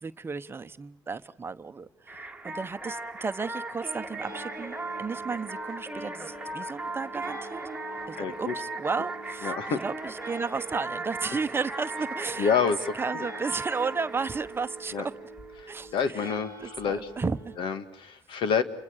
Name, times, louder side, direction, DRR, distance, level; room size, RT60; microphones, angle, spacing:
voice 1, 0.0-7.6 8.1-12.5 13.0-15.1 15.7-17.5, right 4 dB, 25° right, 11 dB, 0.9 m, -34 dB
sound 1, 2.1-15.5, right 2 dB, 10° right, 1.8 m, -38 dB
sound 2, 4.0-17.6, right 2 dB, 35° left, 5.8 m, -46 dB
voice 2, 8.1-8.5 9.4-9.8 12.4-12.8 13.1-13.3 14.9-15.1 15.6-17.1 17.6-18.6, left 6 dB, 70° left, 11 dB, 1.9 m, -28 dB
29.0 x 24.5 x 6.5 m, 0.69 s
cardioid pair, 95°, 9 cm